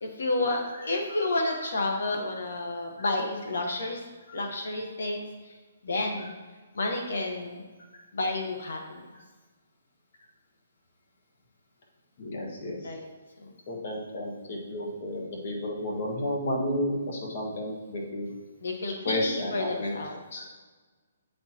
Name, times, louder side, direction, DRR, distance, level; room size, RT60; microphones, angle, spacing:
voice 1, 0.0-4.0 4.3-5.3 5.8-6.3 6.7-7.6 8.1-9.0 12.8-13.0 13.4-13.5 18.6-20.2, left 2 dB, 75° left, 2 dB, 1.1 m, -30 dB
voice 2, 0.8-2.0 4.3-4.4 6.2-6.3 12.2-12.9 13.7-18.3 19.0-19.9 20.3-20.4, left 1 dB, 50° left, -1 dB, 1.5 m, -32 dB
8.3 x 4.4 x 2.9 m, 1.3 s
hypercardioid pair, 160°, 0 cm